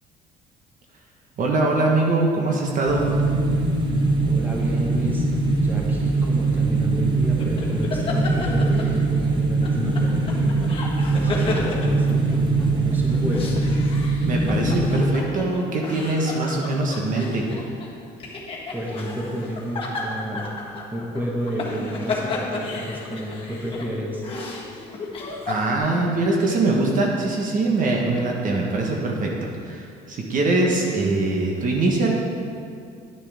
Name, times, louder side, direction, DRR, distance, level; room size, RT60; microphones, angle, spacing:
voice 1, 1.4-3.1 14.2-17.5 25.5-32.1, right 2 dB, 50° right, -1 dB, 1.3 m, -22 dB
sound 1, 2.9-15.1, right 3 dB, 25° right, 1.2 m, -22 dB
voice 2, 4.3-5.2 5.6-13.6 18.7-20.5 20.9-24.2, equal, 10° right, -2 dB, 1.5 m, -31 dB
sound 2, 7.4-9.3 9.6-12.7 13.1-25.8, left 3 dB, 30° left, 1.6 m, -33 dB
11.0 x 7.0 x 3.6 m, 2.3 s
cardioid pair, 110°, 17 cm